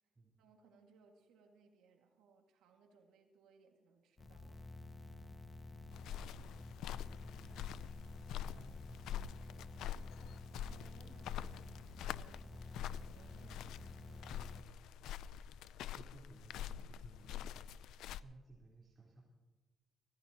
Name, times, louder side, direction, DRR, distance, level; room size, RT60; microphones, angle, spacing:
voice 1, 0.4-4.7 10.6-14.9, right 5 dB, 90° right, 2 dB, 2.1 m, -67 dB
sound 1, 4.2-14.6, left 2 dB, 35° left, 1.7 m, -51 dB
sound 2, 5.9-18.2, left 10 dB, 85° left, 0.5 m, -46 dB
voice 2, 6.0-9.4 15.2-19.2, right 2 dB, 25° right, -5 dB, 4.2 m, -61 dB
24.5 x 16.0 x 3.0 m, 1.2 s
cardioid pair, 90°, 0 cm